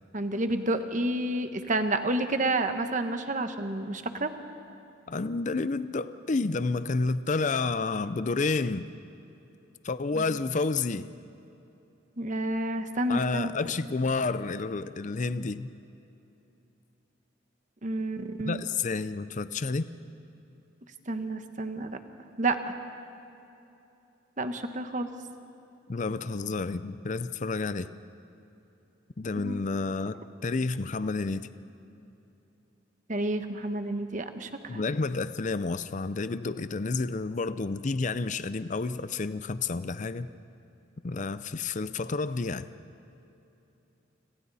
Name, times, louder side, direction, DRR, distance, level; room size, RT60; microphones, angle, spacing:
voice 1, 0.1-4.3 10.1-10.2 12.2-13.5 17.8-18.6 21.1-22.0 22.4-22.7 24.4-25.1 29.4-29.5 33.1-34.8, right 2 dB, 40° right, 7 dB, 1.3 m, -30 dB
voice 2, 5.1-8.9 9.8-11.1 13.1-15.7 18.4-19.9 25.9-27.9 29.2-30.2 30.4-31.5 34.7-40.3 41.0-42.7, left 3 dB, 40° left, 13 dB, 0.5 m, -30 dB
30.0 x 26.0 x 4.2 m, 2.9 s
head